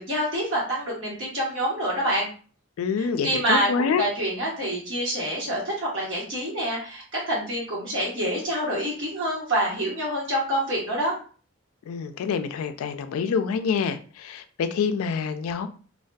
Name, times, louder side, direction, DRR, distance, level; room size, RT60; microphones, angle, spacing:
voice 1, 0.0-2.3 3.0-11.2, right 1 dB, 60° right, 1.1 m, -27 dB
voice 2, 2.8-4.1 11.9-15.7, left 6 dB, 90° left, 0.3 m, -26 dB
2.5 x 2.2 x 2.2 m
head